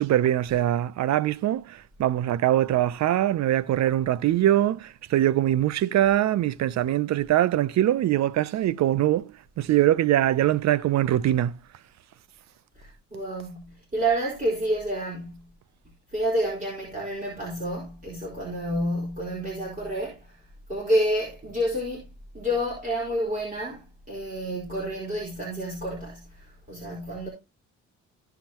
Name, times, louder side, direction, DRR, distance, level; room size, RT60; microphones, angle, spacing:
voice 1, 0.0-11.5, right 12 dB, 65° right, 0.6 m, -23 dB
voice 2, 12.8-15.4 16.1-20.3 20.7-22.0 22.3-27.3, right 1 dB, 25° right, 4.4 m, -29 dB
15.5 x 5.9 x 2.9 m
cardioid pair, 90°, 30 cm